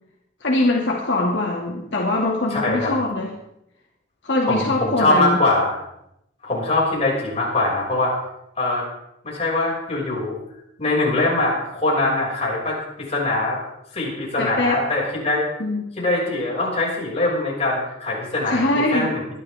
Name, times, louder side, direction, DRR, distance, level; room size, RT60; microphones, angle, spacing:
voice 1, 0.4-3.3 4.2-5.4 14.4-14.8 15.6-15.8 18.5-19.2, left 2 dB, 85° left, -2 dB, 2.4 m, -22 dB
voice 2, 2.5-2.9 4.4-5.7 6.4-8.1 8.6-8.8 9.2-10.3 10.8-12.8 13.1-13.6 13.9-15.5 16.0-19.2, left 2 dB, 35° left, -4 dB, 6.3 m, -22 dB
22.5 x 11.5 x 3.6 m, 0.81 s
head